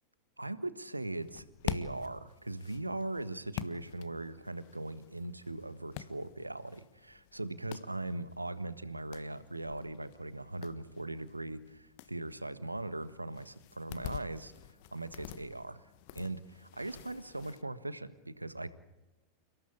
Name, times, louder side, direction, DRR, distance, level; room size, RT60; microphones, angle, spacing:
voice 1, 0.4-14.5 14.9-18.7, right 2 dB, 85° right, 14 dB, 1.4 m, -40 dB
sound 1, 1.2-17.6, left 13 dB, 50° left, 1.3 m, -47 dB
29.5 x 17.5 x 8.6 m, 1.1 s
figure-of-eight pair, 90°, 0 cm